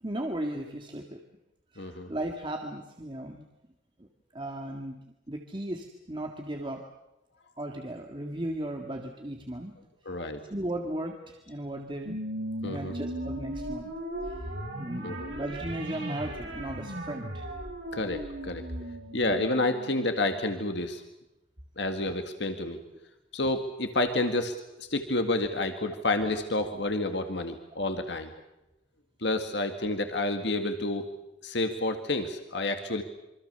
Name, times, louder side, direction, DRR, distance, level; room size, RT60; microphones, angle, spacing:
voice 1, 0.0-1.2 1.7-3.4 4.0-4.1 4.3-5.0 5.3-6.9 7.6-9.7 10.5-12.2 12.6-13.9 14.2-14.4 14.8-17.5, right 1 dB, 25° right, 2 dB, 1.9 m, -36 dB
voice 2, 1.8-2.1 10.1-10.4 12.6-13.0 15.0-15.3 17.9-18.7 19.1-21.0 21.8-22.8 23.3-28.3 29.2-31.1 31.4-33.0, left 2 dB, 60° left, 6 dB, 2.0 m, -29 dB
sound 1, 12.0-20.8, right 1 dB, 60° right, 7.1 m, -37 dB
26.5 x 25.0 x 6.9 m, 0.92 s
head